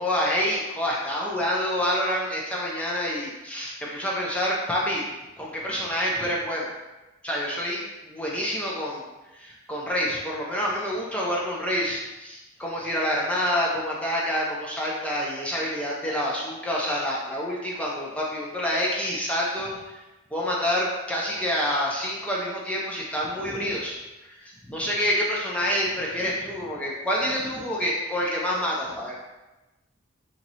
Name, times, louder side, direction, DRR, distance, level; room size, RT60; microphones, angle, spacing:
voice 1, 0.0-5.1 5.4-6.7 7.2-9.0 9.3-20.0 20.3-29.2, equal, 5° left, -5 dB, 0.6 m, -27 dB
3.0 x 2.8 x 4.0 m, 1.1 s
head